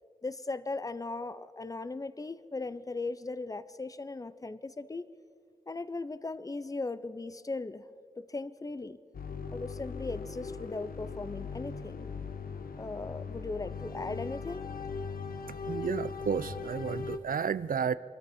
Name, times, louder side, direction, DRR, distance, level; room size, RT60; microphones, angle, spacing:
voice 1, 0.2-5.1 5.7-7.9 8.2-9.0 9.5-12.1 12.8-14.7, left 3 dB, 25° left, 15 dB, 0.5 m, -38 dB
sound 1, 9.1-17.2, left 5 dB, 85° left, 0.8 m, -39 dB
voice 2, 15.7-18.0, right 7 dB, 75° right, 16 dB, 0.5 m, -32 dB
25.0 x 13.0 x 4.2 m, 2.4 s
wide cardioid pair, 105°, 15 cm